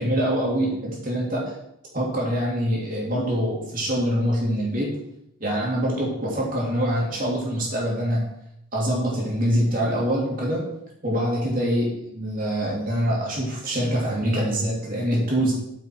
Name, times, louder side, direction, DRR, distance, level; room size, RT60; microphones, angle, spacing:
voice 1, 0.0-1.5 1.9-4.9 5.4-8.2 8.7-10.7 11.0-15.5, equal, 40° right, -4 dB, 2.8 m, -24 dB
8.8 x 5.8 x 4.6 m, 0.80 s
head